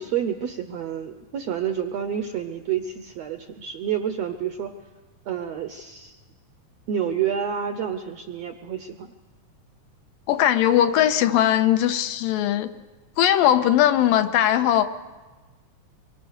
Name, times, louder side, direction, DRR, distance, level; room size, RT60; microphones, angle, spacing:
voice 1, 0.0-4.7 5.3-6.2 6.9-9.1, right 8 dB, 75° right, 7 dB, 1.5 m, -29 dB
voice 2, 10.3-12.7 13.2-14.9, left 11 dB, 80° left, 8 dB, 2.6 m, -19 dB
25.0 x 23.0 x 6.6 m, 1.3 s
omnidirectional pair, 4.0 m